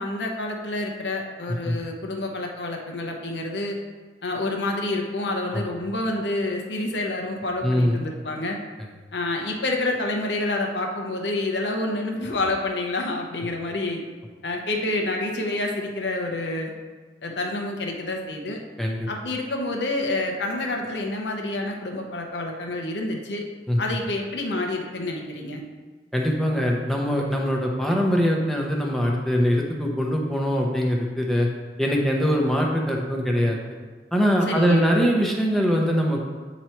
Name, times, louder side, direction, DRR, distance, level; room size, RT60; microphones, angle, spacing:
voice 1, 0.0-3.8 4.2-8.6 9.1-14.0 14.4-16.7 17.2-18.6 19.1-23.4 23.8-25.6 34.4-34.9, left 2 dB, 80° left, 1 dB, 0.9 m, -28 dB
voice 2, 7.6-8.0 18.8-19.1 23.7-23.8 26.1-31.5 31.8-33.6 34.1-36.2, equal, ahead, -1 dB, 0.7 m, -22 dB
8.1 x 3.0 x 4.4 m, 1.4 s
head